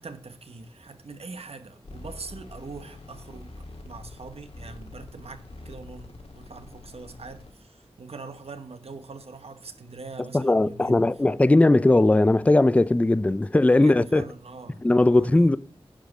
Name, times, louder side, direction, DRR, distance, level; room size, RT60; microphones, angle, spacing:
voice 1, 0.0-11.1 13.7-14.8 15.1-15.5, right 4 dB, 80° right, 1.1 m, -43 dB
sound 1, 1.8-7.5, left 2 dB, 80° left, 2.2 m, -45 dB
voice 2, 10.3-14.2 14.8-15.6, left 2 dB, 15° left, 0.4 m, -19 dB
10.0 x 5.1 x 6.4 m
wide cardioid pair, 65°, 10 cm